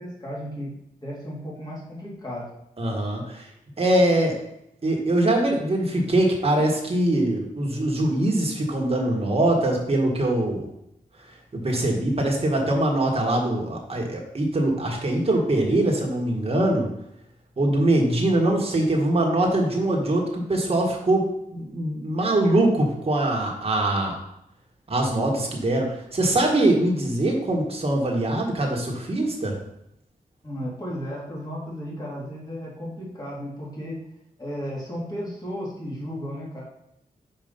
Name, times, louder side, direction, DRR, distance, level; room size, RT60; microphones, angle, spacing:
voice 1, 0.0-2.5 3.5-3.6 30.4-34.0 34.4-36.6, equal, 25° left, -5 dB, 2.7 m, -34 dB
voice 2, 2.8-3.5 3.8-4.4 4.8-10.7 11.5-16.9 17.6-24.1 24.9-29.5, right 1 dB, 40° right, 0 dB, 1.7 m, -23 dB
5.5 x 4.9 x 5.3 m, 0.80 s
wide cardioid pair, 90°, 15 cm